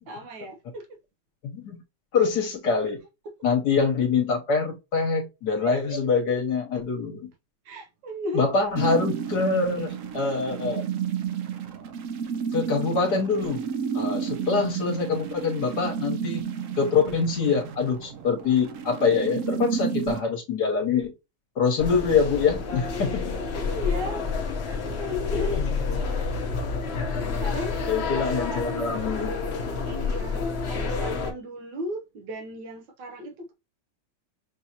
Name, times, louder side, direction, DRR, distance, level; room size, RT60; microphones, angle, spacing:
voice 1, 0.1-1.0 3.2-3.3 5.6-6.0 7.6-8.4 23.7-24.3 24.6-25.7 27.1-29.0 29.9-33.5, left 1 dB, 90° right, 1.5 m, -35 dB
voice 2, 1.4-1.8 2.1-3.0 3.4-7.3 8.3-10.8 12.5-13.6 13.9-16.5 16.7-21.1 21.6-23.2 27.9-29.3, left 5 dB, 65° left, 1.4 m, -25 dB
sound 1, 8.7-20.2, right 7 dB, 70° right, 0.7 m, -31 dB
sound 2, 21.8-31.3, left 4 dB, 50° left, 0.8 m, -29 dB
6.0 x 2.7 x 2.8 m
omnidirectional pair, 1.9 m